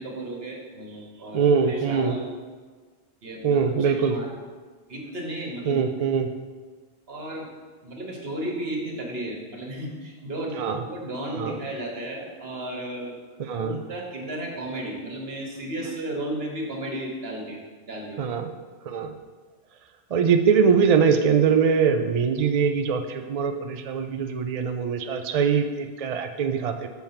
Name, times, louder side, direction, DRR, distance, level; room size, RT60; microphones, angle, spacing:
voice 1, 0.0-2.3 3.2-4.4 4.9-5.8 7.1-7.5 7.8-13.2 13.5-18.3, right 1 dB, 70° right, 0 dB, 1.6 m, -34 dB
voice 2, 1.3-2.1 3.4-4.2 5.7-6.3 10.5-10.8 11.3-11.6 13.4-13.8 18.2-18.5 18.9-19.1 20.1-26.9, right 6 dB, 50° right, 6 dB, 0.5 m, -22 dB
7.1 x 4.4 x 5.6 m, 1.4 s
omnidirectional pair, 1.0 m